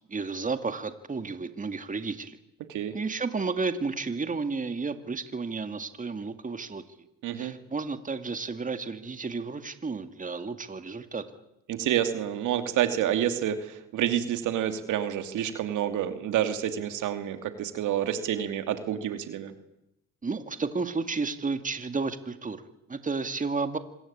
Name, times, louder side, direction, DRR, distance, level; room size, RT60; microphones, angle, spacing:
voice 1, 0.1-2.4 2.9-6.8 7.4-11.4 20.2-23.8, right 4 dB, 25° right, 9 dB, 2.2 m, -32 dB
voice 2, 7.2-7.6 11.7-19.5, right 10 dB, 85° right, 8 dB, 2.6 m, -28 dB
26.0 x 22.0 x 8.7 m, 0.86 s
cardioid pair, 90°, 30 cm